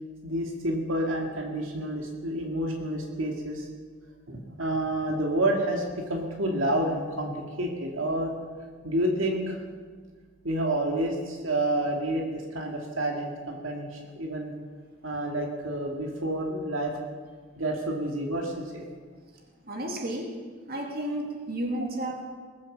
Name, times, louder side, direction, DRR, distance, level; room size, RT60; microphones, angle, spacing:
voice 1, 0.2-3.7 4.3-8.3 8.8-9.6 10.4-14.5 15.0-16.9 17.6-18.9, right 1 dB, 80° right, 0 dB, 2.1 m, -29 dB
voice 2, 19.6-20.4 20.7-22.3, right 1 dB, 50° right, 1 dB, 2.4 m, -32 dB
20.5 x 7.6 x 7.4 m, 1.5 s
head